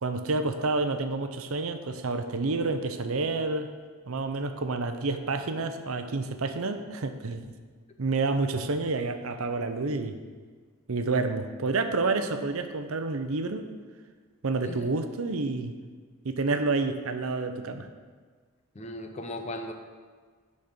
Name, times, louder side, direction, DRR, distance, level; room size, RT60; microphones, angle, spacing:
voice 1, 0.0-3.7 4.1-7.5 8.0-10.2 10.9-13.7 14.4-15.7 16.2-17.9, right 3 dB, 75° right, 8 dB, 0.7 m, -29 dB
voice 2, 18.7-19.7, left 1 dB, 30° left, 5 dB, 0.7 m, -37 dB
10.5 x 4.3 x 6.6 m, 1.6 s
head